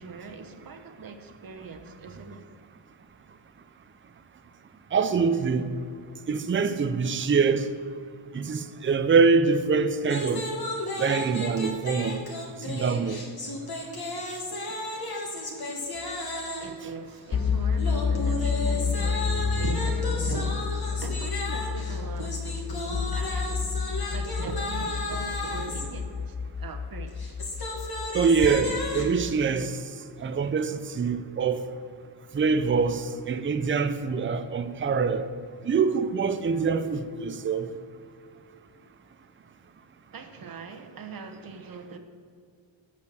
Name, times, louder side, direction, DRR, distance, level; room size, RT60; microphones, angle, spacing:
voice 1, 0.0-2.4 16.6-23.8 24.1-27.4 40.1-42.0, right 4 dB, 50° right, 1.0 m, -40 dB
voice 2, 4.9-5.7 6.3-7.7 8.3-10.4 11.0-12.2 12.7-13.2 28.1-29.8 30.2-31.6 32.3-35.3 35.6-37.7, right 5 dB, 25° right, 0.5 m, -24 dB
sound 1, 10.0-16.8 17.8-25.9 27.1-29.3, left 2 dB, 50° left, 1.6 m, -34 dB
sound 2, 17.3-29.3, left 5 dB, 30° left, 0.4 m, -30 dB
8.5 x 6.6 x 6.7 m
wide cardioid pair, 145°, 46 cm